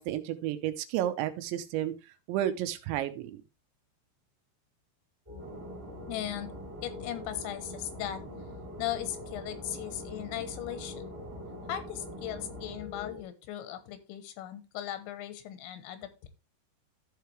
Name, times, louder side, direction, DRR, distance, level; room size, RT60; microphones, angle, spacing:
voice 1, 0.0-1.9 2.3-3.3, right 12 dB, 85° right, 10 dB, 3.1 m, -31 dB
sound 1, 5.3-13.2, left 4 dB, 5° right, 1.4 m, -44 dB
sound 2, 5.4-12.8, right 6 dB, 55° right, 2.7 m, -47 dB
voice 2, 6.1-6.5 6.8-8.2 8.8-11.0 11.7-16.3, left 12 dB, 85° left, 11 dB, 3.3 m, -38 dB
14.0 x 4.9 x 3.3 m, 0.27 s
omnidirectional pair, 5.2 m